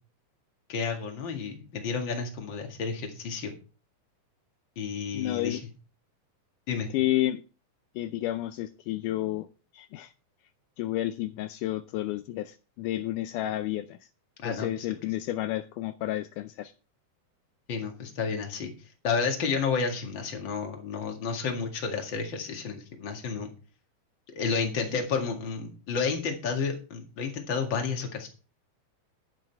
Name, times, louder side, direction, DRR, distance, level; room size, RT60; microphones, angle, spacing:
voice 1, 0.7-3.5 4.8-5.6 6.7-6.9 14.4-14.7 17.7-18.7 19.0-23.5 24.4-28.3, left 5 dB, 40° left, 2.4 m, -31 dB
voice 2, 5.1-5.6 6.7-7.4 8.0-9.5 9.7-10.1 10.8-14.0 14.4-16.7, left 14 dB, 80° left, 2.1 m, -31 dB
11.0 x 7.6 x 4.6 m
omnidirectional pair, 3.7 m